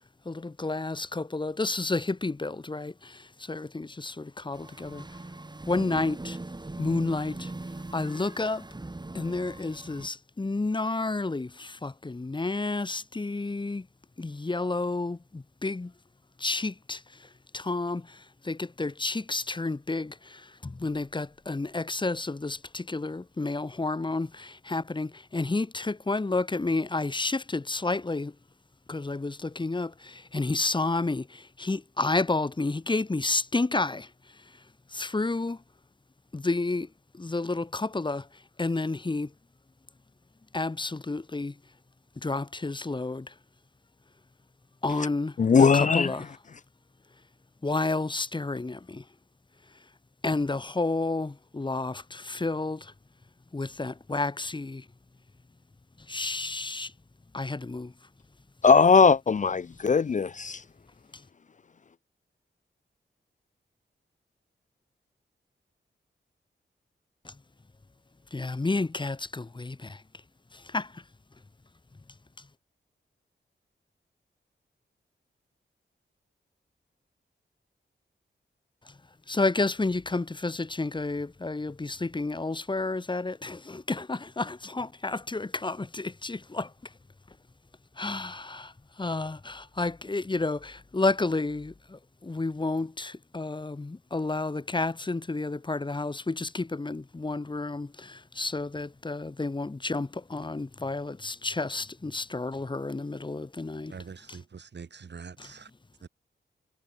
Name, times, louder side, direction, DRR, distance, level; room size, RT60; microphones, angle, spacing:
voice 1, 0.3-2.9 3.5-5.0 5.7-6.4 6.8-7.5 7.9-8.6 9.1-13.8 14.2-15.9 16.4-17.0 17.5-18.0 18.5-20.1 20.6-28.3 28.9-29.9 30.3-31.2 31.6-34.1 34.9-35.6 36.3-36.9 37.2-38.2 38.6-39.3 40.5-41.5 42.2-43.2 44.8-45.3 45.9-46.2 47.6-49.0 50.2-52.8 53.5-54.8 56.1-56.9 57.3-57.9 68.3-70.0 70.7-70.9 79.3-86.7 88.0-88.7 89.0-91.7 92.2-97.9 98.4-103.9, left 3 dB, 25° left, 1.3 m, -30 dB
sound 1, 4.5-10.1, right 2 dB, 20° right, 5.4 m, -41 dB
voice 2, 45.4-46.3 58.6-60.6, left 5 dB, 40° left, 0.5 m, -20 dB
voice 3, 103.9-105.7 106.0-106.1, right 5 dB, 65° right, 5.3 m, -44 dB
wide cardioid pair, 105°, 19 cm